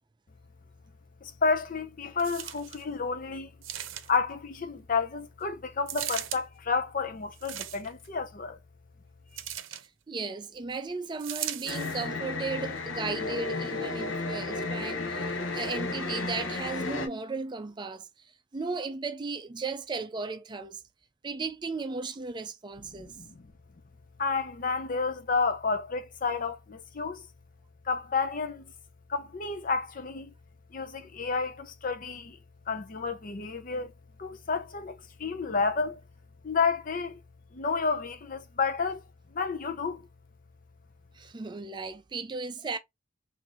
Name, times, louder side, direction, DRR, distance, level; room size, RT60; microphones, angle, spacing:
voice 1, 1.2-3.5 4.1-8.6 9.3-9.4 22.9-23.5 24.2-27.3 27.9-28.7 29.1-30.3 30.7-32.4 32.7-33.9 34.2-36.0 36.4-37.2 37.5-39.0 39.3-40.0, left 4 dB, 45° left, 0.6 m, -30 dB
sound 1, 2.2-2.8 3.6-4.3 5.9-6.4 7.3-8.1 9.4-9.9 11.2-12.1 12.8-12.9, right 11 dB, 85° right, 0.6 m, -37 dB
voice 2, 10.1-18.1 18.5-20.8 21.2-23.1 41.1-42.8, right 4 dB, 25° right, 0.4 m, -35 dB
sound 2, 11.7-17.1, left 3 dB, 80° left, 0.8 m, -33 dB
3.8 x 2.6 x 3.0 m
head